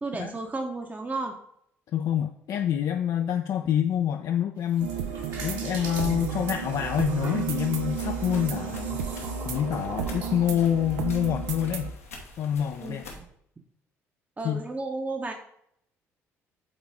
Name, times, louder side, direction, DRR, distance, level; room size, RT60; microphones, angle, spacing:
voice 1, 0.0-1.4 12.8-13.3 14.4-15.3, right 3 dB, 20° right, 3 dB, 0.9 m, -33 dB
voice 2, 1.9-4.9 5.3-9.0 9.5-11.9 12.4-13.0 14.4-14.6, left 10 dB, 50° left, 5 dB, 0.4 m, -27 dB
sound 1, 4.6-11.2, right 4 dB, 60° right, 1.8 m, -43 dB
sound 2, 4.8-11.9, right 6 dB, 75° right, 0.6 m, -32 dB
sound 3, 7.9-13.2, left 2 dB, 85° left, 1.0 m, -47 dB
8.1 x 4.0 x 3.5 m, 0.71 s
figure-of-eight pair, 50°, 7 cm